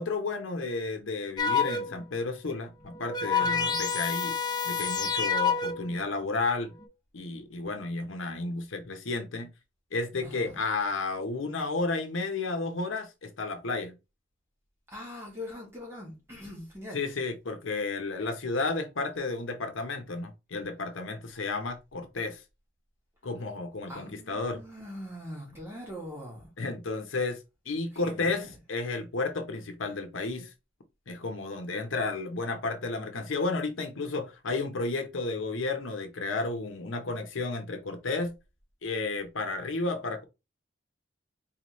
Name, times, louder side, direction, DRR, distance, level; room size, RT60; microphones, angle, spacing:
voice 1, 0.0-4.4 4.6-6.7 7.1-9.5 9.9-13.9 16.9-22.4 23.2-24.6 26.6-27.4 27.7-30.5 31.1-38.3 38.8-40.2, left 3 dB, 85° left, 0.8 m, -32 dB
sound 1, 1.4-2.1 2.8-6.0 6.7-6.9, left 5 dB, 20° left, 0.4 m, -28 dB
voice 2, 3.4-3.8 10.2-10.6 14.9-17.0 23.9-26.5 27.9-28.5, left 1 dB, 15° right, 1.4 m, -42 dB
4.2 x 2.8 x 3.0 m
head